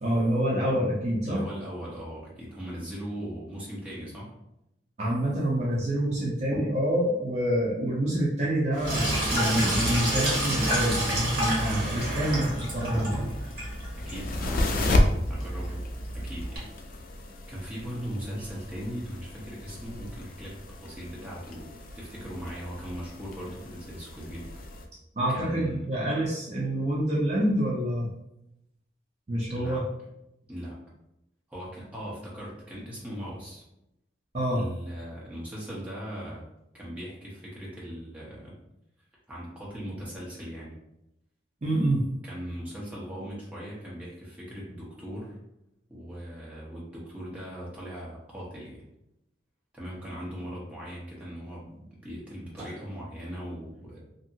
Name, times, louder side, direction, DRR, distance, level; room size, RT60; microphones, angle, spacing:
voice 1, 0.0-1.4 5.0-13.2 25.1-28.1 29.3-29.8 34.3-34.6 41.6-42.1, right 1 dB, 35° right, -5 dB, 0.5 m, -27 dB
voice 2, 1.2-4.3 14.1-15.9 16.1-16.7 17.5-24.6 25.3-25.9 29.5-29.8 30.5-30.8 31.5-33.6 34.5-36.4 36.7-38.6 39.3-40.8 42.2-45.4 45.9-48.8 49.7-51.7 52.0-54.0, equal, 5° right, -6 dB, 0.8 m, -39 dB
Sink (filling or washing), 8.7-16.6, right 1 dB, 55° right, 1.2 m, -29 dB
sound 1, 11.2-24.9, left 1 dB, 45° left, 0.3 m, -33 dB
2.7 x 2.6 x 2.6 m, 0.86 s
head